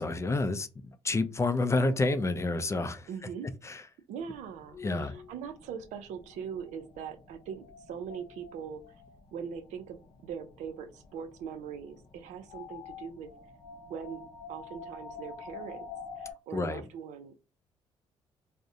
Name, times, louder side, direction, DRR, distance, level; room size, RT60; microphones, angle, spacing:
voice 1, 0.0-3.1 3.6-3.8 4.8-5.1 16.5-16.8, left 2 dB, 25° left, 0.4 m, -29 dB
voice 2, 3.1-3.5 4.1-8.8 9.3-13.3 13.9-15.8 16.2-17.3, right 7 dB, 80° right, 0.4 m, -41 dB
sound 1, 4.2-16.3, left 5 dB, 70° left, 0.7 m, -48 dB
2.4 x 2.0 x 2.6 m
supercardioid pair, 65°, 12 cm